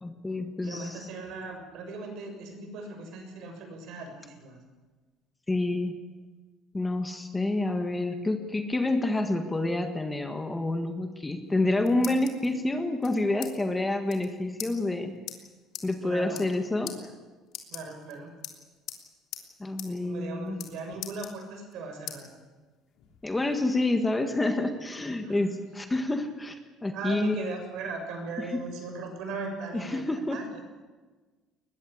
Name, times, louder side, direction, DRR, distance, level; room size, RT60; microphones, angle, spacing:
voice 1, 0.0-1.1 5.5-6.0 6.7-15.1 15.8-17.1 19.6-20.7 23.2-26.6 26.8-27.4 28.4-28.6 29.7-30.4, left 2 dB, 10° left, 6 dB, 1.7 m, -28 dB
voice 2, 0.6-4.6 16.0-16.4 17.7-18.3 20.0-22.4 25.2-25.4 26.9-30.6, right 3 dB, 65° right, 4 dB, 6.9 m, -38 dB
sound 1, 11.4-12.5 13.0-13.5 13.8-13.9 14.1-14.3 14.6-14.7 15.3-15.4 15.7-15.9 16.2-16.6 16.9-17.0 17.5-18.1 18.4-19.0 19.3-19.5 19.8-19.9 20.2-20.7 21.0-21.7 22.1-22.2 22.7-23.6, left 11 dB, 65° left, 3.3 m, -40 dB
22.0 x 21.0 x 8.6 m, 1.3 s
cardioid pair, 155°, 0 cm